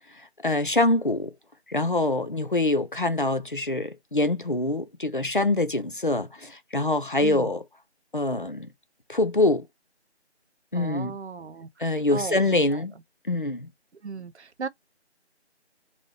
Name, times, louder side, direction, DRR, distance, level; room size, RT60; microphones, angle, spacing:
voice 1, 0.4-1.3 1.7-7.6 8.1-8.7 9.1-9.7 10.7-11.1 11.8-12.9 13.2-13.7, left 2 dB, 50° left, 0.4 m, -24 dB
voice 2, 7.2-7.6 10.7-12.8 13.9-14.7, right 5 dB, 75° right, 0.6 m, -37 dB
2.7 x 2.6 x 3.2 m
figure-of-eight pair, 175°, 34 cm